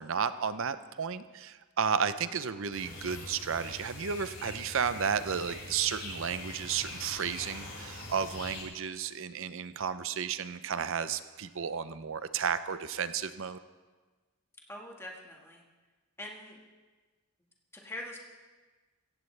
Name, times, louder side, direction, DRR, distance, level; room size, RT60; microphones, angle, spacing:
voice 1, 0.0-13.6, right 7 dB, 60° right, 13 dB, 0.6 m, -33 dB
sound 1, 2.7-8.6, left 2 dB, 65° left, 3.9 m, -43 dB
voice 2, 14.7-15.6 16.2-16.6 17.7-18.2, left 1 dB, 10° left, -1 dB, 1.7 m, -43 dB
16.0 x 15.5 x 3.3 m, 1.3 s
head